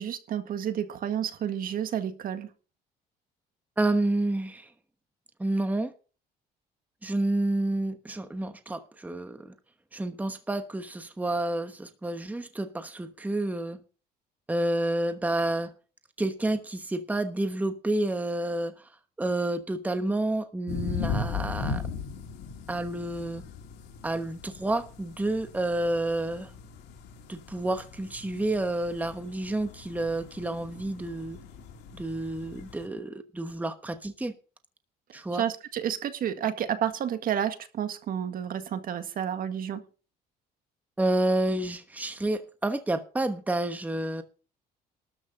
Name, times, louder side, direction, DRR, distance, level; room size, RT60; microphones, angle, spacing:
voice 1, 0.0-2.5 35.4-39.8, right 9 dB, 55° right, 1.8 m, -30 dB
voice 2, 3.8-4.7 5.4-5.9 7.0-9.5 9.9-13.8 14.5-15.7 16.2-18.7 19.2-21.8 22.7-23.5 24.0-26.5 27.3-31.4 31.9-34.3 35.1-35.4 41.0-44.2, right 1 dB, 10° right, 1.1 m, -29 dB
sound 1, 20.7-32.9, left 5 dB, 85° left, 2.4 m, -38 dB
13.0 x 6.1 x 7.4 m
cardioid pair, 110°, 17 cm